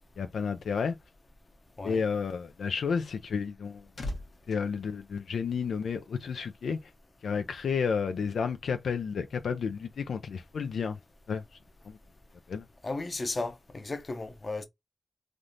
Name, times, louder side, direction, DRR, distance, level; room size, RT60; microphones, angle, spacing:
voice 1, 0.2-0.9 1.8-3.8 4.5-6.8 7.2-11.0 11.3-11.4 11.9-12.0 12.5-12.7, left 6 dB, 90° left, 0.3 m, -31 dB
sound 1, 3.4-5.9 6.2-6.4, left 1 dB, 70° left, 1.1 m, -42 dB
voice 2, 12.8-14.7, left 2 dB, 45° left, 0.7 m, -35 dB
3.4 x 2.4 x 2.6 m
cardioid pair, 60°, 0 cm